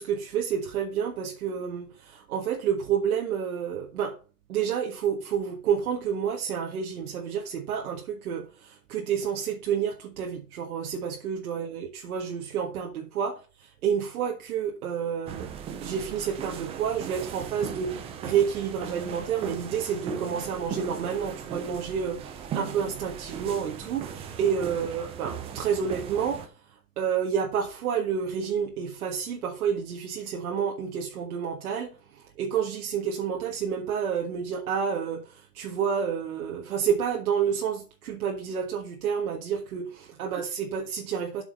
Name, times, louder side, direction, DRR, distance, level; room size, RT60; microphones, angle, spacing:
voice 1, 0.0-4.2 4.5-15.5 15.8-26.5 27.0-41.4, right 7 dB, 65° right, 1.7 m, -29 dB
sound 1, 15.3-26.5, right 7 dB, 15° right, 0.5 m, -38 dB
8.5 x 5.6 x 5.3 m
hypercardioid pair, 140°, 47 cm